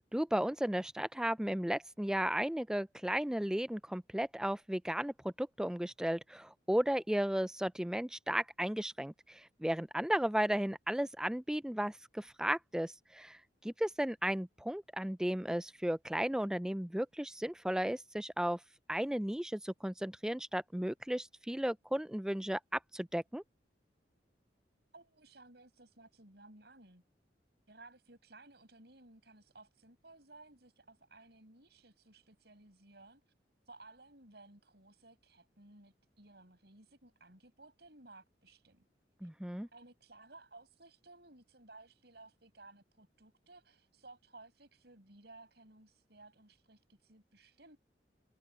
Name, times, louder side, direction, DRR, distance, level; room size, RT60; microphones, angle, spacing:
voice 1, 0.0-18.6 18.9-23.4 39.2-39.7, right 1 dB, 5° right, 0.3 m, -35 dB
voice 2, 24.9-27.0 27.7-33.2 33.7-38.8 39.2-39.3 39.7-47.8, right 2 dB, 65° right, 7.1 m, -58 dB
head